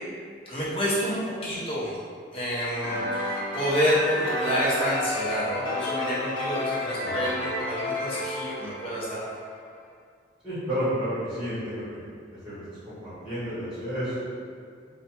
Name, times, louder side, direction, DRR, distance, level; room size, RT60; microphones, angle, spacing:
voice 1, 0.5-2.0 2.3-9.2, equal, 30° left, -9 dB, 0.7 m, -28 dB
sound 1, 2.8-9.5, left 1 dB, 75° left, 0.7 m, -31 dB
voice 2, 10.4-12.0 12.4-14.4, equal, 5° right, -15 dB, 1.1 m, -31 dB
2.6 x 2.1 x 2.8 m, 2.2 s
head